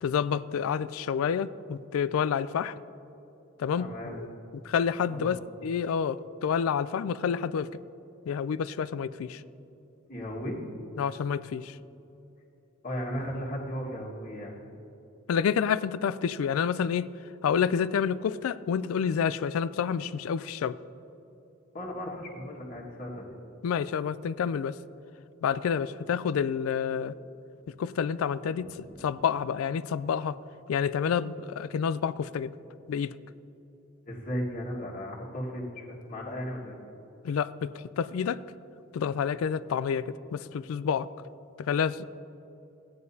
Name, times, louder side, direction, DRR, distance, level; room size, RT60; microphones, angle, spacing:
voice 1, 0.0-2.7 3.6-4.3 4.6-7.7 8.3-9.4 11.0-11.8 15.3-17.1 17.4-20.8 23.6-24.8 25.4-27.1 27.8-30.4 30.7-32.5 32.9-33.2 37.2-38.4 38.9-41.1 41.6-42.0, left 7 dB, 90° left, 17 dB, 0.3 m, -29 dB
voice 2, 3.8-4.2 5.1-5.3 10.1-10.6 12.8-14.5 21.7-23.3 28.5-29.0 34.1-36.9, equal, 40° left, -4 dB, 1.6 m, -36 dB
16.0 x 9.6 x 2.7 m, 2.9 s
head